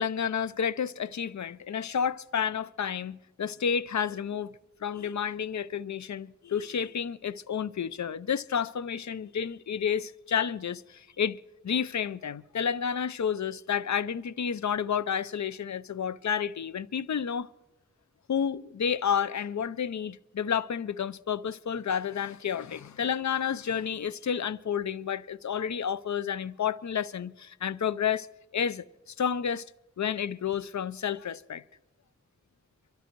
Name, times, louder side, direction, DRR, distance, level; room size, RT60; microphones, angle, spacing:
voice 1, 0.0-4.5 4.8-11.4 11.6-17.5 18.3-28.3 28.5-29.6 30.0-31.6, left 7 dB, 65° left, 0.5 m, -30 dB
24.0 x 13.0 x 4.5 m
wide cardioid pair, 60°, 30 cm